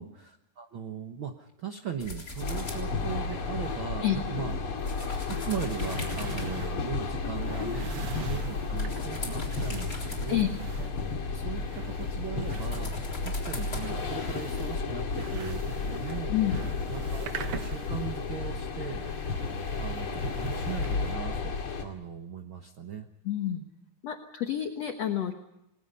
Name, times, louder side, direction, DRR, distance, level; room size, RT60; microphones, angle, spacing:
voice 1, 0.0-4.7 5.3-10.5 11.3-12.9 13.2-16.3 16.9-19.1 19.8-23.1, right 7 dB, 85° right, 5 dB, 1.1 m, -38 dB
sound 1, 2.0-11.8 12.3-13.8, left 2 dB, 25° left, 3.8 m, -44 dB
sound 2, 2.4-21.8, left 4 dB, 40° left, 2.8 m, -33 dB
sound 3, 5.2-21.1, right 7 dB, 60° right, 1.5 m, -44 dB
voice 2, 16.3-16.6 23.3-23.6 24.0-25.3, left 11 dB, 60° left, 5 dB, 1.9 m, -29 dB
28.5 x 20.5 x 5.5 m, 0.82 s
omnidirectional pair, 4.3 m